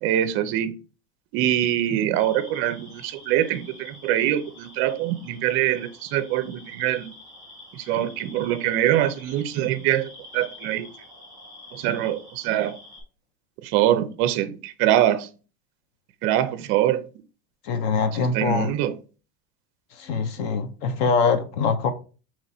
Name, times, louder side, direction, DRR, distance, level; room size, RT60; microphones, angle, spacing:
voice 1, 0.0-0.7 1.3-7.1 7.7-10.9 11.7-12.8 13.6-15.3 16.2-17.0 18.1-18.9, right 12 dB, 40° right, 0.5 m, -24 dB
sound 1, 2.1-13.0, left 2 dB, 10° right, 1.4 m, -47 dB
voice 2, 17.6-18.7 20.0-21.9, left 5 dB, 55° left, 0.7 m, -23 dB
4.0 x 3.0 x 4.1 m
supercardioid pair, 160°, 32 cm